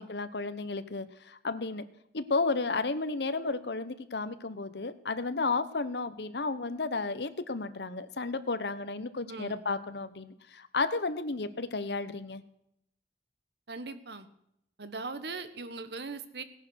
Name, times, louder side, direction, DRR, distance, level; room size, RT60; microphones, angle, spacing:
voice 1, 0.0-1.8 2.1-12.4, left 3 dB, 70° left, 12 dB, 1.0 m, -33 dB
voice 2, 9.3-9.6 13.7-14.3 14.8-16.4, right 3 dB, 70° right, 11 dB, 1.3 m, -40 dB
17.0 x 10.5 x 6.4 m, 0.76 s
head